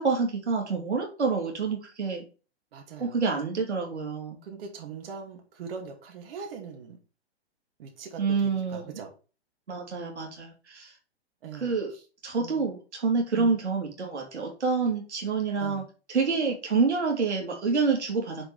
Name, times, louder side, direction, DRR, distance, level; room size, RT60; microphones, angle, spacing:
voice 1, 0.0-2.2 3.0-4.4 8.2-8.9 9.7-10.9 11.6-11.9 12.2-15.8 16.1-18.5, right 4 dB, 90° right, 1 dB, 2.6 m, -27 dB
voice 2, 2.7-3.2 4.4-7.0 7.8-9.1 11.4-12.0 12.4-12.7 13.3-13.6 15.6-15.9, right 6 dB, 60° right, 2 dB, 2.5 m, -41 dB
6.5 x 4.7 x 4.8 m, 0.34 s
hypercardioid pair, 130°, 33 cm